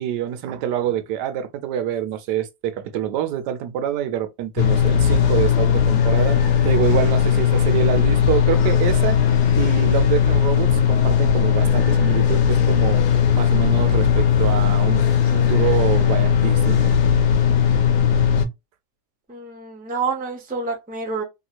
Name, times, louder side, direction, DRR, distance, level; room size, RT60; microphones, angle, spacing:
voice 1, 0.0-9.2 9.6-13.0 13.3-16.9, right 10 dB, 80° right, 1.2 m, -26 dB
sound 1, 4.6-18.4, left 7 dB, 75° left, 1.2 m, -18 dB
voice 2, 19.3-21.2, right 4 dB, 10° right, 0.5 m, -28 dB
3.1 x 2.9 x 2.3 m
omnidirectional pair, 1.8 m